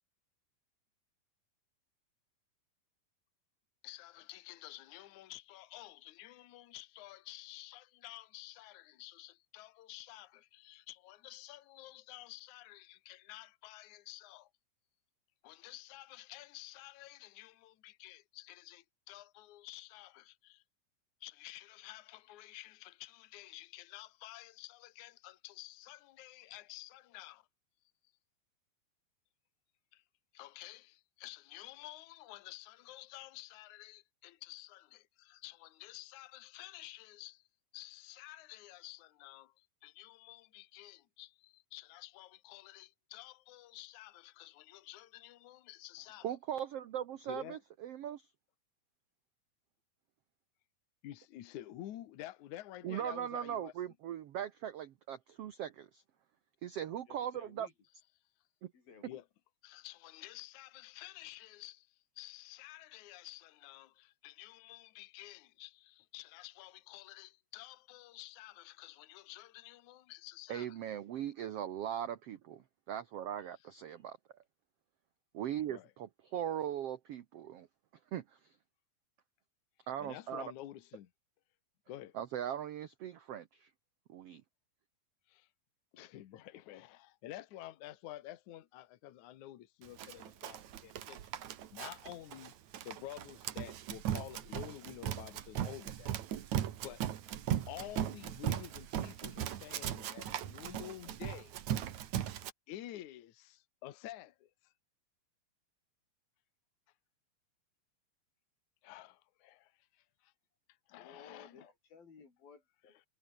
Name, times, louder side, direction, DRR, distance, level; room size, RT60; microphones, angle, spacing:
voice 1, 3.8-14.5 15.4-20.6 21.2-27.5 29.9-30.0 30.3-37.4 37.7-46.3 47.3-47.6 51.0-53.7 59.0-59.2 59.6-70.8 75.7-75.9 80.0-81.1 81.9-82.2 85.3-85.5 85.9-91.3 91.7-92.5 92.8-96.1 96.8-97.0 97.7-101.6 102.7-104.7 108.8-109.7 110.2-110.3 110.9-111.7, left 15 dB, 65° left, 2.6 m, -50 dB
voice 2, 46.2-48.3 52.8-56.0 56.6-57.7 58.6-58.7 70.5-74.2 75.3-77.7 78.1-78.6 79.9-80.5 82.1-83.7 84.1-84.4, right 10 dB, 75° right, 1.4 m, -40 dB
voice 3, 57.1-57.7 58.7-59.2 111.0-113.1, left 5 dB, 80° left, 7.0 m, -57 dB
Run, 90.0-102.5, right 11 dB, 60° right, 2.6 m, -38 dB
omnidirectional pair, 4.1 m